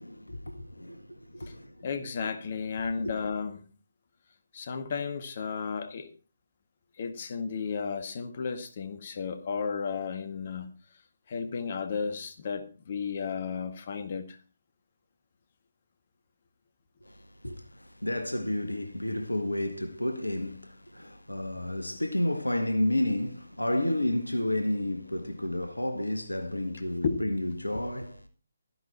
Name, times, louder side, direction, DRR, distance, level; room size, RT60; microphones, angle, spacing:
voice 1, 0.0-1.9 17.0-28.3, left 1 dB, 80° left, 1.7 m, -31 dB
voice 2, 1.8-3.7 4.5-6.1 7.0-10.7 11.3-14.4 27.0-27.2, left 5 dB, 40° left, 1.9 m, -33 dB
14.0 x 11.0 x 4.3 m
figure-of-eight pair, 145°, 0 cm